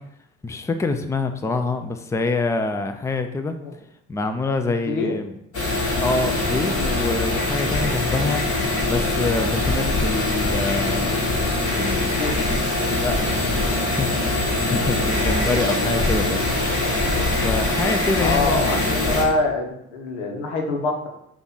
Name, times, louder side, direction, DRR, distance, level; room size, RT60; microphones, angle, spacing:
voice 1, 0.4-3.6 4.1-5.4 6.0-8.4 8.9-11.2 11.6-12.6 12.9-16.4 17.3-19.0, left 3 dB, 10° left, 8 dB, 0.4 m, -26 dB
sound 1, 5.5-19.2, left 2 dB, 40° left, 1.7 m, -23 dB
voice 2, 12.0-12.4 18.2-21.1, left 2 dB, 90° left, 2 dB, 0.9 m, -25 dB
5.4 x 2.5 x 4.0 m, 0.79 s
hypercardioid pair, 60°, 34 cm